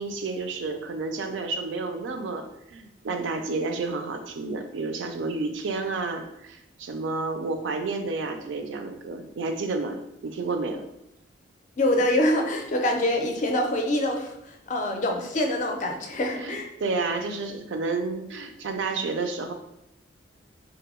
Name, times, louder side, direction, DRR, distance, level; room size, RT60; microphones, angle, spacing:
voice 1, 0.0-10.8 16.4-19.5, right 3 dB, 75° right, 6 dB, 0.4 m, -30 dB
voice 2, 11.8-14.3 14.7-16.7, left 1 dB, 40° left, 2 dB, 0.4 m, -25 dB
2.9 x 2.0 x 3.5 m, 0.84 s
head